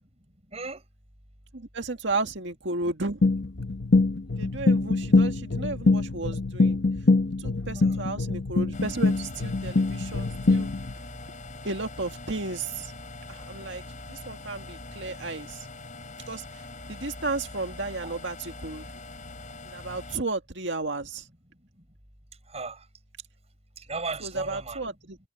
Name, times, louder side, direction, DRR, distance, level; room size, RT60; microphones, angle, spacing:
voice 1, 0.5-0.8 7.7-8.0 18.0-18.2 22.5-22.8 23.8-24.8, right 3 dB, 30° right, 7.2 m, -36 dB
voice 2, 1.5-3.4 4.4-6.8 7.4-10.7 11.6-12.9 13.3-13.8 14.1-15.7 16.3-18.9 19.7-21.3 24.2-25.2, right 3 dB, 65° right, 2.1 m, -33 dB
sound 1, 3.2-10.9, left 3 dB, 60° left, 0.9 m, -24 dB
sound 2, 8.7-20.2, left 2 dB, 40° left, 6.9 m, -43 dB
head